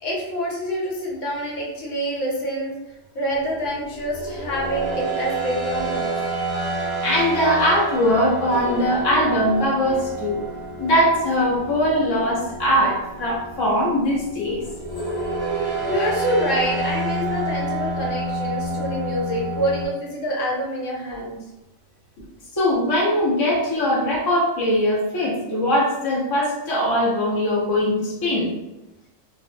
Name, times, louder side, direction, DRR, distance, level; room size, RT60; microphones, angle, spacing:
voice 1, 0.0-2.7 3.1-6.1 9.3-9.4 15.9-21.4, equal, 75° left, -4 dB, 1.1 m, -26 dB
sound 1, 3.4-19.9, right 2 dB, 25° right, 0.5 m, -29 dB
voice 2, 7.0-10.4 10.8-14.6 15.8-16.0 22.5-28.6, equal, 30° left, -6 dB, 0.4 m, -21 dB
2.3 x 2.0 x 2.6 m, 0.95 s
omnidirectional pair, 1.3 m